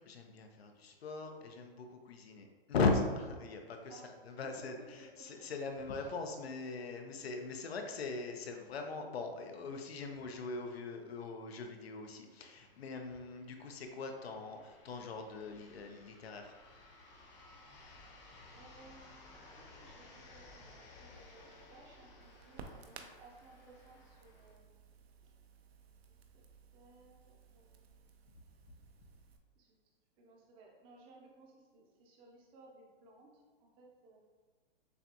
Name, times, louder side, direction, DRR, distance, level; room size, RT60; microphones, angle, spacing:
voice 1, 0.0-16.5, left 3 dB, 85° left, 4 dB, 0.8 m, -39 dB
voice 2, 3.9-5.5 6.0-6.2 18.5-25.0 26.3-26.4 26.7-28.2 29.6-29.7 30.2-34.2, right 2 dB, 15° right, -1 dB, 0.6 m, -60 dB
sound 1, 11.8-24.6, left 2 dB, 30° left, 0.8 m, -58 dB
Crackle, 21.1-29.4, right 5 dB, 85° right, 0.7 m, -57 dB
6.7 x 2.3 x 2.9 m, 1.3 s
hypercardioid pair, 155°, 30 cm